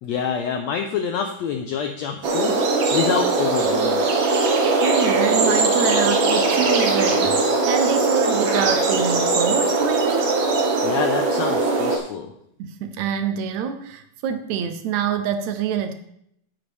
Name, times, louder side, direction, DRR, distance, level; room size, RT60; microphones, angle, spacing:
voice 1, 0.0-4.1 10.8-12.3, left 7 dB, 90° left, 5 dB, 1.5 m, -27 dB
sound 1, 2.2-12.0, right 3 dB, 60° right, 1.3 m, -20 dB
voice 2, 4.8-10.3 12.6-15.9, right 8 dB, 80° right, 9 dB, 1.7 m, -26 dB
11.0 x 8.1 x 3.4 m, 0.73 s
omnidirectional pair, 3.8 m